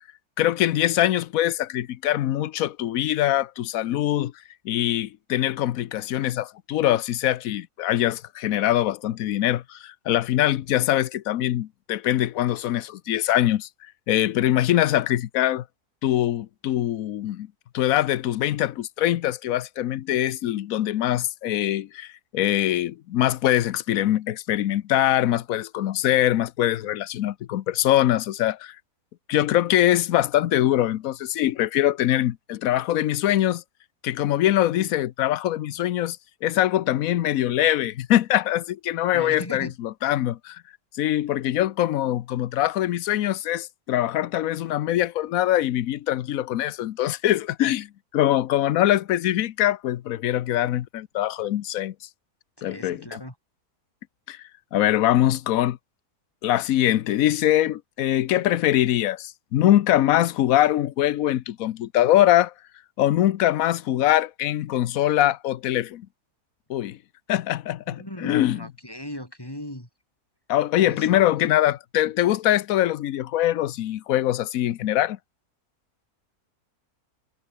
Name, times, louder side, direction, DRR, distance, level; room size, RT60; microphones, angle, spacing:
voice 1, 0.4-4.3 4.6-13.7 14.1-15.6 16.0-17.5 17.7-28.8 29.3-33.6 34.0-40.6 41.0-51.9 52.6-53.2 54.3-54.4 54.7-55.8 56.4-62.5 63.0-66.1 66.7-67.0 67.3-68.7 70.5-75.2, left 13 dB, 70° left, 1.1 m, -23 dB
voice 2, 39.1-39.7 52.6-53.3 67.9-69.9 70.9-71.5, left 1 dB, 15° left, 5.4 m, -38 dB
omnidirectional pair, 1.6 m